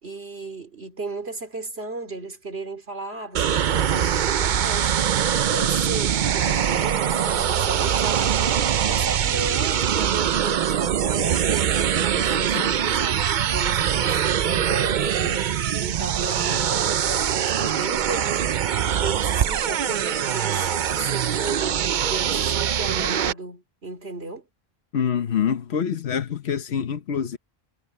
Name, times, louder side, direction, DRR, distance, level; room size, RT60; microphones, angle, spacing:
voice 1, 0.0-24.5, right 3 dB, 85° right, 3.3 m, -35 dB
sound 1, 3.3-23.3, right 9 dB, 55° right, 0.7 m, -23 dB
voice 2, 24.9-27.4, left 8 dB, 90° left, 1.2 m, -25 dB
omnidirectional pair, 1.0 m